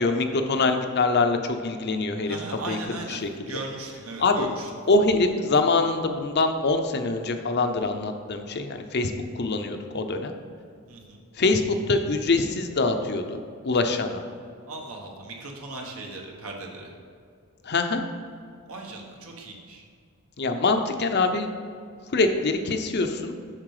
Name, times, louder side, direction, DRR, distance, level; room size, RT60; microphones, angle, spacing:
voice 1, 0.0-2.4 2.7-3.6 4.2-4.5 4.9-10.3 11.4-13.4 13.6-14.2 17.6-18.0 20.4-21.5 22.1-23.4, left 3 dB, 50° left, 6 dB, 0.6 m, -24 dB
voice 2, 2.2-4.7 10.9-11.2 14.7-16.9 18.7-19.8, right 3 dB, 75° right, 1 dB, 1.4 m, -38 dB
7.4 x 6.6 x 4.9 m, 2.3 s
head